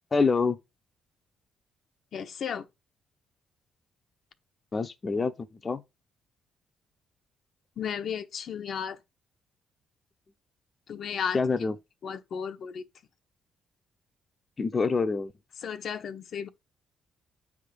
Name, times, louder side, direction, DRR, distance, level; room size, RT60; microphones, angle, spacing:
voice 1, 0.1-0.6 4.7-5.3 5.6-5.8 11.3-11.7 14.6-15.3, left 4 dB, 30° left, 0.8 m, -25 dB
voice 2, 2.1-2.7 7.8-9.0 10.9-11.4 12.0-12.8 15.6-16.5, left 7 dB, 60° left, 1.0 m, -34 dB
8.8 x 3.6 x 6.7 m
cardioid pair, 90°, 0 cm